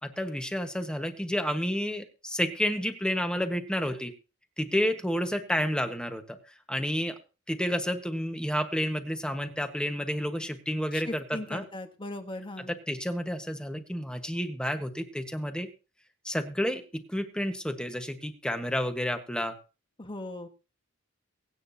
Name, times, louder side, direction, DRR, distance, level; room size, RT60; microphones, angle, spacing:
voice 1, 0.0-4.1 4.6-6.4 6.7-7.2 7.5-11.6 12.6-15.7 16.2-19.6, equal, 5° left, 7 dB, 1.3 m, -30 dB
voice 2, 10.9-12.7 20.0-20.5, left 1 dB, 25° left, 6 dB, 1.5 m, -38 dB
23.5 x 8.9 x 2.8 m, 0.33 s
head